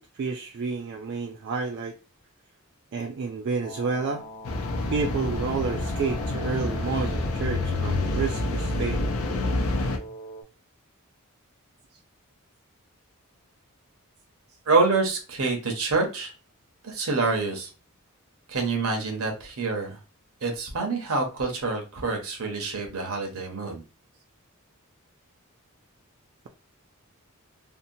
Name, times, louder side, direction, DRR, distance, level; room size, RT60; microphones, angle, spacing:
voice 1, 0.0-1.9 2.9-4.2 4.9-9.1, right 4 dB, 50° right, 0.3 m, -30 dB
sound 1, 3.6-10.4, right 1 dB, 30° left, 0.5 m, -42 dB
sound 2, 4.4-10.0, left 2 dB, 80° left, 0.5 m, -28 dB
voice 2, 14.7-16.3 16.8-17.7 18.5-20.0 20.4-23.8, right 3 dB, 75° right, 0.9 m, -26 dB
2.8 x 2.1 x 2.6 m
head